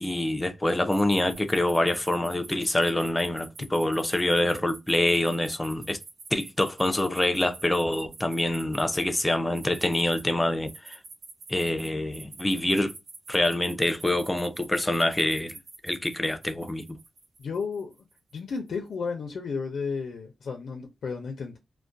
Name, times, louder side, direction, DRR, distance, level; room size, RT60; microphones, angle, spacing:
voice 1, 0.0-6.0 6.3-11.0 11.5-12.9 13.3-15.5 15.8-17.0, left 1 dB, 10° left, 0.4 m, -26 dB
sound 1, 0.9-9.0 9.5-10.2 10.7-18.5, right 3 dB, 75° right, 0.7 m, -45 dB
voice 2, 17.4-17.9 18.3-21.6, left 5 dB, 75° left, 0.4 m, -33 dB
2.3 x 2.1 x 2.5 m
wide cardioid pair, 125°, 0 cm